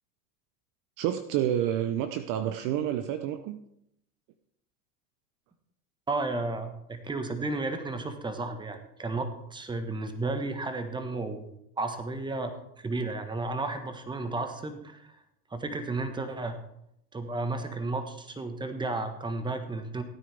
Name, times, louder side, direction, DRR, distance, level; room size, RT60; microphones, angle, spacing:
voice 1, 1.0-3.6, right 11 dB, 40° right, 9 dB, 0.8 m, -29 dB
voice 2, 6.1-11.5 11.8-15.1 15.5-16.6 17.1-20.0, right 2 dB, 10° right, 8 dB, 1.3 m, -33 dB
17.0 x 9.2 x 3.5 m, 0.78 s
hypercardioid pair, 110°, 48 cm